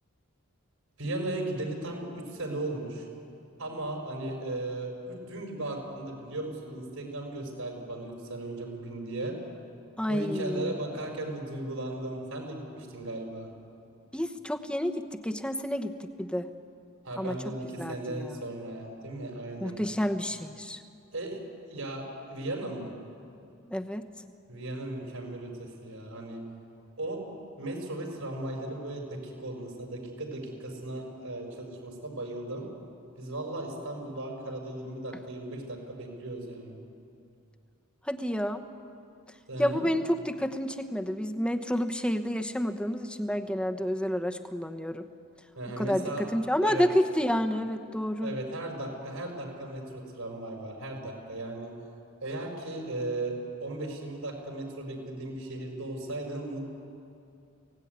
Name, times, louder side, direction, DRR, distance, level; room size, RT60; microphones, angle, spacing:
voice 1, 1.0-3.1 3.6-9.4 10.1-13.5 17.0-19.8 21.1-21.4 21.7-22.9 24.5-26.4 27.0-27.2 27.6-32.7 33.2-36.8 39.5-39.9 45.6-46.9 48.2-51.7 52.2-56.7, right 2 dB, 85° right, 2 dB, 5.8 m, -36 dB
voice 2, 10.0-10.8 14.1-16.5 17.2-17.4 17.8-18.4 19.6-20.8 23.7-24.1 38.1-38.6 39.6-45.0 45.8-48.4, equal, 5° left, 6 dB, 1.0 m, -29 dB
23.5 x 17.5 x 9.6 m, 2.6 s
head